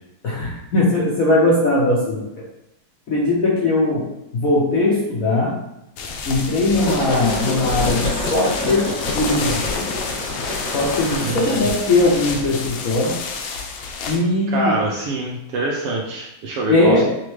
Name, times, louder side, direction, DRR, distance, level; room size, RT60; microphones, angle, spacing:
voice 1, 0.2-2.3 3.1-5.6 6.3-9.9 10.7-13.2 14.1-14.7 16.7-17.0, left 2 dB, 60° left, -5 dB, 0.9 m, -19 dB
sound 1, 6.0-14.2, left 4 dB, 80° left, 1.4 m, -29 dB
sound 2, 6.4-12.2, left 1 dB, 40° left, 1.5 m, -28 dB
voice 2, 11.2-11.7 14.5-17.0, right 2 dB, 75° right, -1 dB, 1.0 m, -25 dB
5.9 x 2.1 x 3.1 m, 0.85 s
omnidirectional pair, 2.2 m